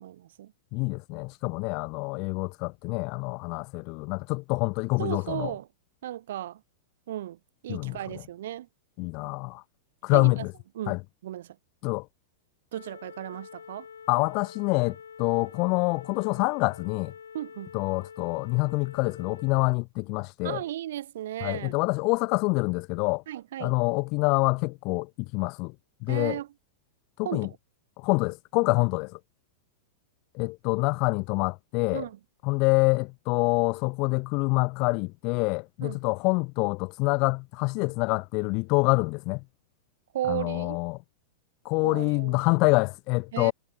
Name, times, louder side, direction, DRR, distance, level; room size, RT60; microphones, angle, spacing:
voice 1, 0.0-0.5 5.0-5.7 6.0-6.6 7.1-8.7 10.1-10.4 10.7-11.0 11.2-11.6 12.7-13.9 17.3-17.7 20.4-21.7 23.3-23.8 26.1-26.5 27.2-27.6 31.9-32.2 35.8-36.0 40.1-40.8 41.8-42.3 43.3-43.5, right 12 dB, 70° right, 1.1 m, -35 dB
voice 2, 0.7-5.5 7.7-8.0 9.0-9.6 10.0-10.5 10.9-11.0 11.8-12.1 14.1-17.1 17.7-20.6 21.4-23.2 23.6-25.7 26.0-26.4 27.2-27.5 28.0-29.2 30.3-32.0 32.4-39.4 40.3-41.0 41.6-43.5, left 29 dB, 50° left, 0.8 m, -26 dB
sound 1, 12.7-19.7, left 7 dB, 90° left, 2.6 m, -47 dB
hypercardioid pair, 110°, 0 cm